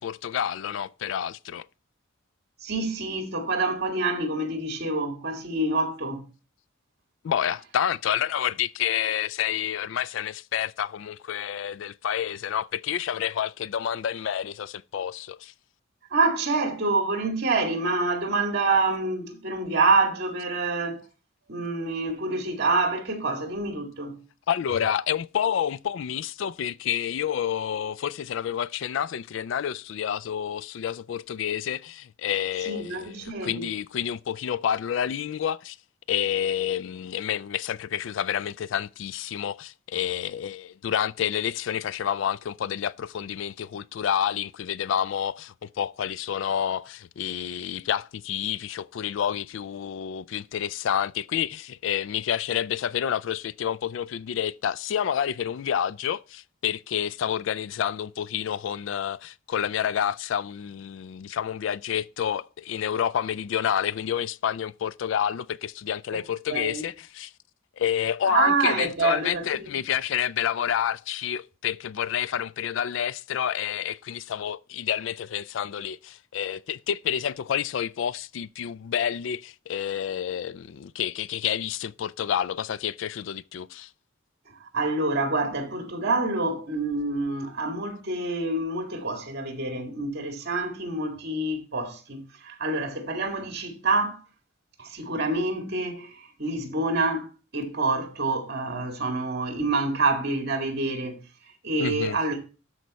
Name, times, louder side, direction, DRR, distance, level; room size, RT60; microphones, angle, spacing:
voice 1, 0.0-1.7 7.2-15.5 24.5-35.8 36.1-67.3 67.8-83.9 101.8-102.2, left 9 dB, 65° left, 0.3 m, -29 dB
voice 2, 2.6-6.2 16.1-21.0 21.5-24.2 32.7-33.7 66.5-66.8 68.3-69.8 84.5-94.2 94.8-101.2 101.6-102.4, right 3 dB, 55° right, 2.0 m, -27 dB
12.5 x 4.5 x 4.1 m
head